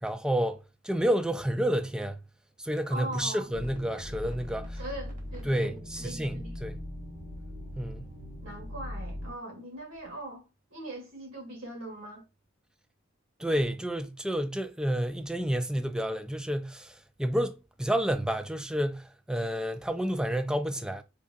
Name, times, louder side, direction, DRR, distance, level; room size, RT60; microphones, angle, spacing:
voice 1, 0.0-2.2 2.6-4.8 5.5-6.8 7.8-8.1 13.4-21.0, equal, 5° right, 0.3 m, -30 dB
voice 2, 2.9-3.5 4.8-6.6 8.4-10.5 10.7-12.2, right 1 dB, 85° right, 1.9 m, -41 dB
sound 1, 3.5-9.3, left 1 dB, 45° right, 1.3 m, -40 dB
4.6 x 2.7 x 2.4 m
head